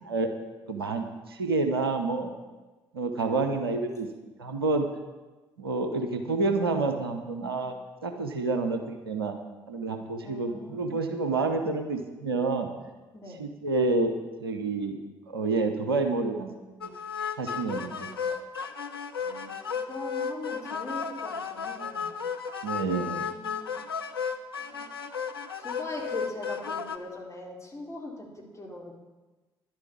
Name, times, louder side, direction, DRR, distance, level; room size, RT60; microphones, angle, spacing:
voice 1, 0.7-2.3 2.9-4.1 4.4-4.9 5.6-7.7 8.0-9.3 9.7-12.7 13.4-14.1 14.4-15.0 15.3-16.5 16.8-16.9 17.4-17.9 18.3-18.4 22.6-23.3, right 3 dB, 85° right, 6 dB, 0.9 m, -28 dB
voice 2, 10.2-11.0 13.1-13.4 19.2-22.5 23.1-23.8 24.6-24.9 25.5-28.9, left 2 dB, 25° left, -2 dB, 3.9 m, -41 dB
sound 1, 16.8-27.0, left 6 dB, 85° left, 0.6 m, -34 dB
11.0 x 8.1 x 8.5 m, 1.2 s
figure-of-eight pair, 45°, 12 cm